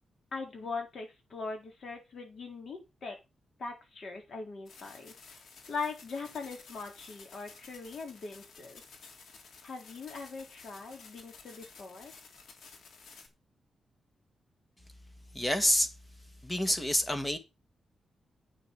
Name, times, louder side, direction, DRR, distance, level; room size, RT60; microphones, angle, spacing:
voice 1, 0.3-3.2 3.6-5.1 5.7-8.8 9.6-12.1, left 4 dB, 55° left, 4.1 m, -41 dB
sound 1, 4.7-13.3, left 4 dB, 85° left, 3.0 m, -53 dB
voice 2, 15.3-15.9 16.4-17.4, left 1 dB, 10° left, 1.7 m, -27 dB
8.9 x 6.5 x 6.9 m
wide cardioid pair, 145°, 0 cm